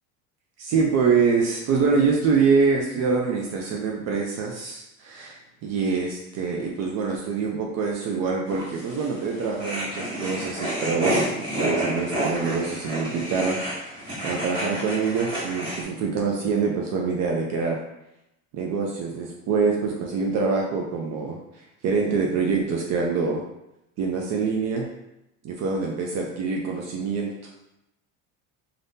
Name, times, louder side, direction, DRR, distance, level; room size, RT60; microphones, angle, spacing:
voice 1, 0.6-5.4 5.6-13.6 14.2-17.8 18.5-21.4 21.8-23.4 24.0-24.9 25.4-27.3, right 5 dB, 45° right, -1 dB, 0.5 m, -25 dB
sound 1, 8.5-15.8, right 1 dB, 15° right, 1.3 m, -30 dB
2.7 x 2.5 x 3.5 m, 0.86 s
cardioid pair, 145°, 37 cm